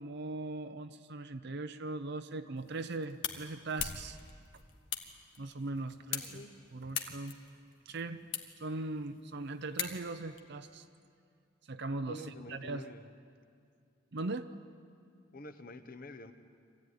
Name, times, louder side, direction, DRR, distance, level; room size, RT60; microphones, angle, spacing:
voice 1, 0.0-4.2 5.4-6.3 6.7-7.4 7.9-8.2 8.6-10.9 11.7-12.9 14.1-14.5, right 2 dB, 55° right, 8 dB, 0.7 m, -39 dB
sound 1, 2.6-10.4, left 8 dB, 60° left, 1.7 m, -43 dB
voice 2, 6.1-6.5 12.1-13.1 15.3-16.3, left 1 dB, 45° left, 7 dB, 1.2 m, -48 dB
24.5 x 15.5 x 9.8 m, 2.3 s
head